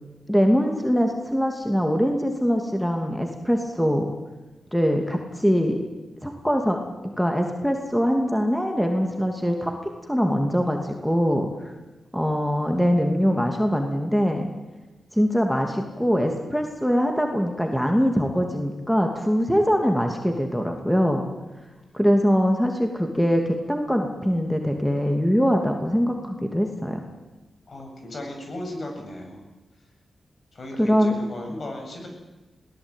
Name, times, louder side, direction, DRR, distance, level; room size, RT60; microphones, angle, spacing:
voice 1, 0.3-4.1 4.7-5.8 6.2-11.5 12.1-14.5 15.1-21.3 21.9-27.0 30.8-31.1, equal, 5° left, 3 dB, 2.7 m, -23 dB
voice 2, 27.7-29.4 30.5-32.1, left 1 dB, 55° left, 2 dB, 7.8 m, -36 dB
21.0 x 18.0 x 9.2 m, 1.2 s
cardioid pair, 65°, 0 cm